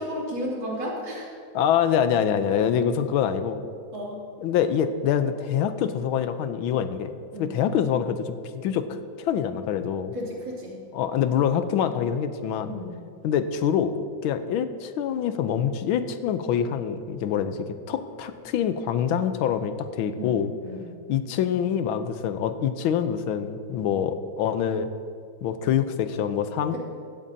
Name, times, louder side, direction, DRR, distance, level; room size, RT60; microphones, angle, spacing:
voice 1, 0.0-1.3 3.9-4.2 7.3-7.5 10.1-10.8 12.7-12.9 20.2-20.3 20.6-20.9, equal, 65° right, -5 dB, 3.4 m, -33 dB
voice 2, 1.5-3.6 4.4-7.1 7.4-8.3 8.5-10.1 10.9-12.7 13.2-13.9 14.2-20.5 21.1-24.9 25.4-26.8, left 8 dB, 90° left, 10 dB, 1.5 m, -25 dB
16.0 x 14.0 x 2.8 m, 2.3 s
omnidirectional pair, 2.2 m